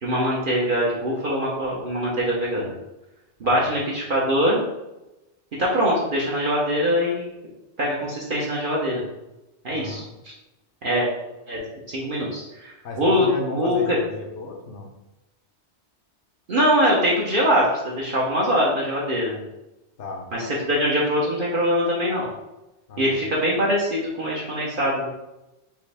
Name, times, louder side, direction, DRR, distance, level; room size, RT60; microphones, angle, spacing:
voice 1, 0.0-2.7 3.4-4.6 5.6-7.3 7.8-9.0 9.6-10.3 10.8-11.1 11.5-13.3 13.5-14.0 16.5-19.4 20.3-22.3 23.0-25.1, equal, 50° right, -5 dB, 1.0 m, -23 dB
voice 2, 3.4-3.7 9.7-10.1 12.8-14.9 20.0-20.3 22.9-23.2, left 2 dB, 75° left, 3 dB, 1.0 m, -34 dB
5.0 x 2.7 x 3.3 m, 0.98 s
omnidirectional pair, 1.2 m